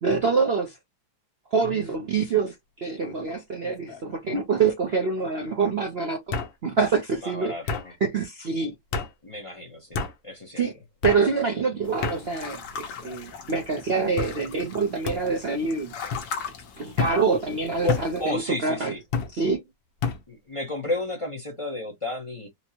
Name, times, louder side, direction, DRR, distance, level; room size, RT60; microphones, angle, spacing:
voice 1, 0.0-0.8 1.5-6.2 6.6-7.5 8.0-8.7 10.6-10.7 11.0-15.9 16.8-18.9 19.3-19.6, right 4 dB, 55° right, 0.7 m, -25 dB
sound 1, 2.9-3.2 3.6-4.2 5.2-5.3 6.3-6.5 7.7-7.9 8.9-9.1 9.9-10.1 11.0-11.2 12.0-12.2 13.0-13.4 14.2-14.4 15.0-15.2 16.1-16.3 17.0-17.2 17.9-18.1 19.1-19.3 20.0-20.2, left 5 dB, 85° left, 1.6 m, -29 dB
voice 2, 7.2-7.9 9.2-10.6 17.8-19.0 20.3-22.5, left 1 dB, 30° left, 0.6 m, -32 dB
sound 2, 11.8-18.3, left 5 dB, 70° left, 1.6 m, -40 dB
4.4 x 2.1 x 2.8 m
omnidirectional pair, 2.0 m